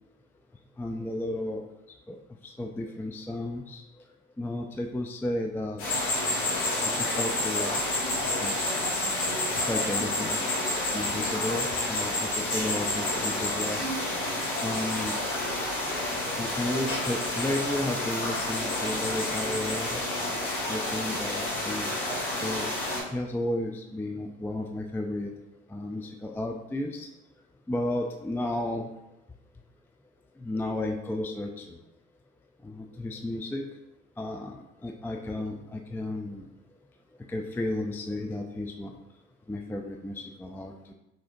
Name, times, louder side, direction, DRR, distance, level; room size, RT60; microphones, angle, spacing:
voice 1, 0.8-1.6 2.1-2.2 2.4-3.8 4.4-5.8 7.0-7.7 8.4-8.6 9.6-10.5 10.9-13.8 14.6-15.2 16.4-20.0 20.7-21.9 22.4-22.7 23.1-25.3 25.7-27.1 27.7-28.9 30.4-31.8 32.6-33.7 34.2-36.4 37.3-38.9 39.5-40.9, left 1 dB, 5° left, 3 dB, 0.4 m, -33 dB
sound 1, 5.8-23.0, left 1 dB, 85° left, 1.6 m, -29 dB
5.6 x 3.3 x 2.6 m, 0.96 s
hypercardioid pair, 60°, 32 cm